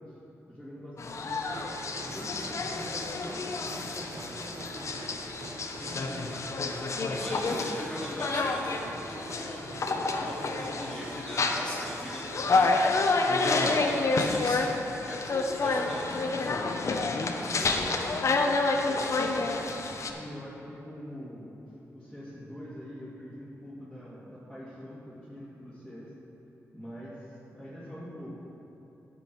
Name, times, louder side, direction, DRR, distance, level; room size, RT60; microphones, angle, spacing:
voice 1, 0.5-1.5 2.0-5.0 5.8-6.3 17.3-19.4 20.0-26.1 26.7-28.5, equal, 5° right, -11 dB, 2.3 m, -44 dB
sound 1, 1.0-20.1, left 3 dB, 55° left, 0.8 m, -29 dB
sound 2, 1.4-12.7, right 2 dB, 65° right, 1.0 m, -45 dB
voice 2, 7.2-8.8 9.1-9.7 10.1-14.7 15.1-16.5, left 1 dB, 15° left, -8 dB, 2.1 m, -40 dB
11.0 x 7.5 x 4.6 m, 3.0 s
cardioid pair, 60°, 6 cm